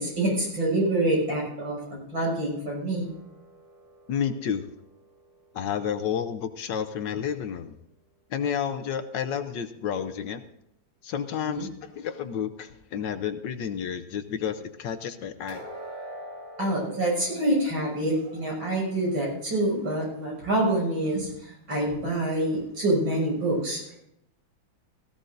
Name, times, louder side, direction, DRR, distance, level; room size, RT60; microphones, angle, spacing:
voice 1, 0.0-3.1 11.3-11.7 16.6-24.0, right 1 dB, 75° right, -3 dB, 7.0 m, -26 dB
sound 1, 3.0-6.1 15.5-19.4 19.8-20.0 20.6-20.7, right 1 dB, 50° right, 4.6 m, -45 dB
voice 2, 4.1-4.6 5.5-7.8 8.3-10.4 11.0-15.7, left 8 dB, 70° left, 10 dB, 1.4 m, -31 dB
17.5 x 16.0 x 2.6 m, 0.80 s
omnidirectional pair, 2.1 m